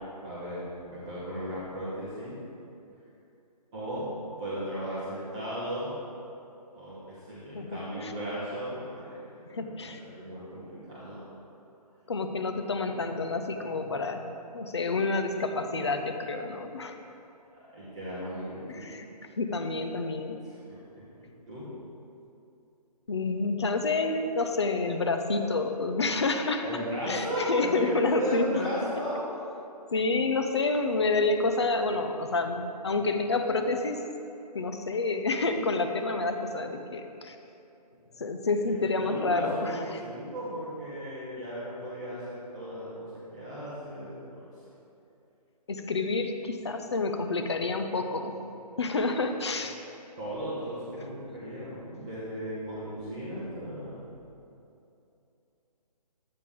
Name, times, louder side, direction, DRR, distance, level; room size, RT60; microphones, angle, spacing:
voice 1, 0.2-2.4 3.7-4.1 4.4-5.9 6.7-7.0 7.3-11.2 17.7-18.8 20.7-21.7 26.6-29.2 38.8-44.4 50.2-54.0, equal, 10° right, -11 dB, 0.8 m, -36 dB
voice 2, 7.5-8.1 9.5-10.0 12.1-14.3 14.5-17.0 18.7-19.0 19.4-20.4 23.1-26.6 27.1-28.5 29.9-34.0 34.5-37.4 38.2-40.0 45.7-48.4 48.8-49.8, left 3 dB, 40° left, 6 dB, 0.7 m, -29 dB
11.5 x 8.6 x 3.6 m, 2.7 s
hypercardioid pair, 175°, 21 cm